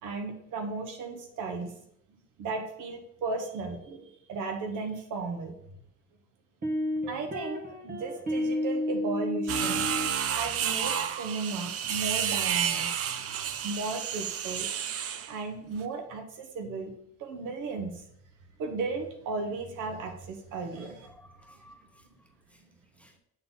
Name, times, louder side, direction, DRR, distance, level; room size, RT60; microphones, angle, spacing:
voice 1, 0.0-1.7 2.4-5.5 7.1-9.9 10.3-12.9 13.4-14.7 15.3-16.9 17.2-18.0 18.6-21.1, right 4 dB, 90° right, 5 dB, 1.2 m, -35 dB
sound 1, 5.6-5.7 6.6-10.1, left 1 dB, 30° right, 1.3 m, -31 dB
sound 2, 9.5-15.3, right 8 dB, 50° right, 0.6 m, -30 dB
voice 2, 20.7-23.2, left 1 dB, 5° left, 2 dB, 1.1 m, -58 dB
7.8 x 3.8 x 4.0 m, 0.73 s
cardioid pair, 90°, 30 cm